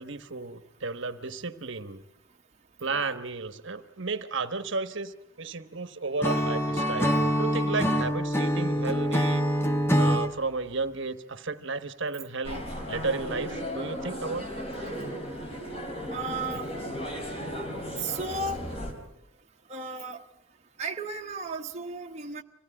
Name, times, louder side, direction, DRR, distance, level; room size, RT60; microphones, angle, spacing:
voice 1, 0.0-2.0 2.8-9.4 9.9-14.5, right 3 dB, 55° right, 11 dB, 1.2 m, -33 dB
Acoustic guitar / Strum, 6.2-10.3, equal, 10° left, 1.2 m, -25 dB
sound 1, 12.4-18.9, equal, 25° left, 3.8 m, -35 dB
voice 2, 16.1-16.7 18.0-18.6 19.7-20.2 20.8-22.4, right 3 dB, 30° right, 1 dB, 1.0 m, -34 dB
26.0 x 17.0 x 9.9 m, 0.83 s
head